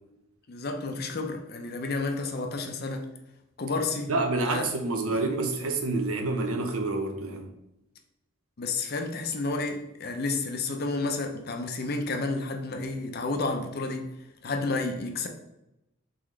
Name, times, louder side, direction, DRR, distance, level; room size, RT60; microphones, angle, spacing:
voice 1, 0.5-3.1 3.6-4.1 4.5-4.7 5.2-5.3 8.6-14.1 14.4-15.3, left 3 dB, 45° left, 4 dB, 0.5 m, -31 dB
voice 2, 4.1-7.5, right 2 dB, 80° right, 4 dB, 0.7 m, -28 dB
3.9 x 3.8 x 3.1 m, 0.87 s
head